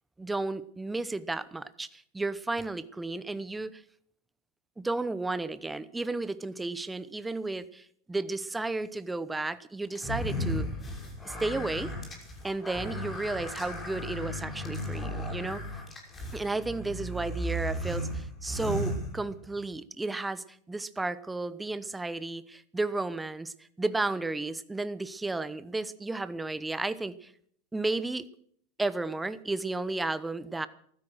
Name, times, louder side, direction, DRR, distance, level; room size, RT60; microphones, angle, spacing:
voice 1, 0.2-3.8 4.8-10.7 11.2-11.9 12.4-15.6 16.3-27.3 27.7-28.3 28.8-30.7, right 2 dB, 10° right, 15 dB, 0.9 m, -33 dB
sound 1, 9.9-19.6, equal, 20° left, 5.9 m, -35 dB
15.0 x 13.0 x 6.3 m, 0.64 s
hypercardioid pair, 110°, 0 cm